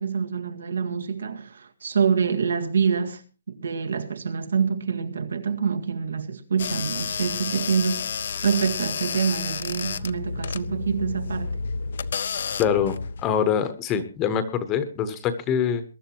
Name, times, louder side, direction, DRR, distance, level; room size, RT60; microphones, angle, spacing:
voice 1, 0.0-3.2 3.5-11.6, right 6 dB, 85° right, 2.0 m, -26 dB
sound 1, 6.6-13.3, left 5 dB, 50° left, 0.6 m, -30 dB
voice 2, 12.6-13.0 13.2-15.8, left 8 dB, 15° left, 1.0 m, -24 dB
22.0 x 12.0 x 3.0 m
hypercardioid pair, 180°, 0 cm